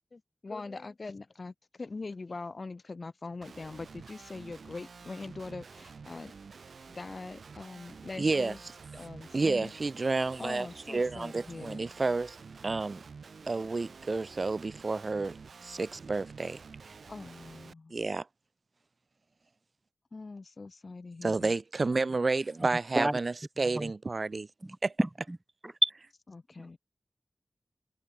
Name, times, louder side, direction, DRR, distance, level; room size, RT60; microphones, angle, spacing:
voice 1, 0.1-6.3 6.9-8.6 8.9-9.7 10.4-11.9 17.1-17.9 20.1-21.5 26.3-26.8, left 3 dB, 50° left, 1.5 m, -42 dB
Guitar, 3.4-17.7, right 5 dB, 85° right, 2.2 m, -49 dB
voice 2, 8.2-8.5 9.3-12.4 12.6-13.0 13.5-15.4 15.6-16.6 17.9-18.3 21.2-24.5 24.8-24.9, right 3 dB, 50° right, 0.8 m, -30 dB
voice 3, 24.6-25.4 25.6-25.9, right 1 dB, 20° right, 2.1 m, -29 dB
wide cardioid pair, 80°, 0 cm